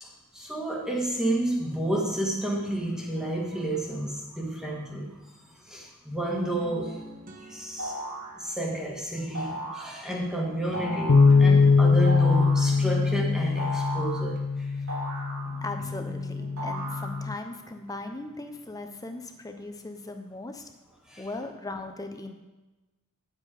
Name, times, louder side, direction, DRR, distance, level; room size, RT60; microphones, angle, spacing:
voice 1, 0.0-5.2 5.6-7.0 7.4-8.0 8.4-14.7 21.1-21.3, right 1 dB, 5° right, -3 dB, 1.6 m, -31 dB
sound 1, 2.4-5.7 6.3-8.5 10.3-10.4 10.7-14.4 15.5-20.5, right 1 dB, 40° right, 1.1 m, -47 dB
sound 2, 7.8-8.3 9.3-9.9 10.7-11.3 12.1-12.7 13.6-14.3 14.9-15.8 16.6-17.4, equal, 75° right, 4.0 m, -35 dB
sound 3, 11.1-17.3, left 4 dB, 85° left, 0.6 m, -22 dB
voice 2, 15.6-20.7 21.2-22.3, left 2 dB, 15° left, 6 dB, 0.7 m, -38 dB
9.5 x 7.6 x 5.0 m, 1.1 s
head